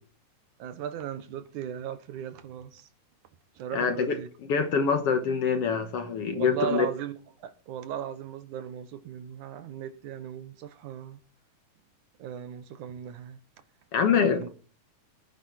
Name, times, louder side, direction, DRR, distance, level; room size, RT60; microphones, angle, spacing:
voice 1, 0.6-2.9 3.6-4.3 6.3-11.2 12.2-13.4 14.3-14.5, right 9 dB, 70° right, 2.5 m, -37 dB
voice 2, 3.7-6.9 13.9-14.5, left 6 dB, 60° left, 1.8 m, -25 dB
19.0 x 9.8 x 4.4 m
omnidirectional pair, 3.7 m